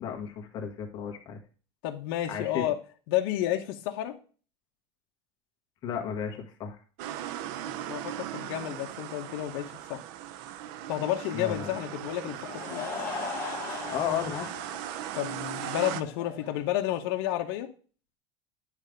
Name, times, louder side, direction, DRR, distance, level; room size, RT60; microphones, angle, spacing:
voice 1, 0.0-1.4 2.3-2.6 5.8-6.8 11.3-11.7 13.9-14.5, left 8 dB, 35° left, 1 dB, 1.6 m, -33 dB
voice 2, 1.8-2.7 3.1-4.1 7.9-10.0 10.9-12.9 15.1-17.7, left 13 dB, 70° left, 5 dB, 1.0 m, -31 dB
sound 1, 7.0-16.0, right 11 dB, 60° right, 0.6 m, -38 dB
Laughter / Crowd, 12.3-16.8, left 4 dB, 15° left, 1.8 m, -39 dB
9.8 x 3.4 x 5.1 m, 0.38 s
cardioid pair, 165°, 13 cm